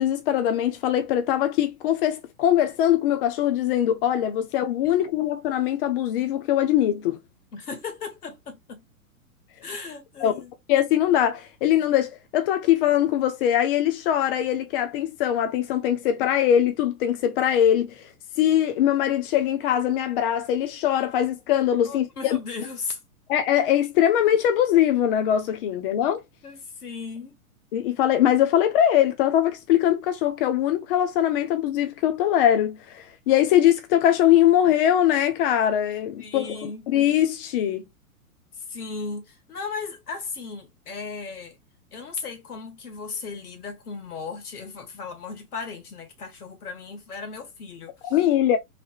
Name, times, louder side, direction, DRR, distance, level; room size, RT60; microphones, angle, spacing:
voice 1, 0.0-7.2 10.2-10.4 10.7-18.1 18.4-22.4 23.3-26.2 27.7-37.9 48.0-48.6, left 11 dB, 40° left, 0.6 m, -22 dB
voice 2, 7.5-8.8 9.6-10.5 21.9-23.0 26.4-27.4 36.2-36.8 38.6-41.6 41.9-48.1, left 4 dB, 80° left, 1.3 m, -36 dB
3.3 x 2.5 x 2.3 m
hypercardioid pair, 115°, 44 cm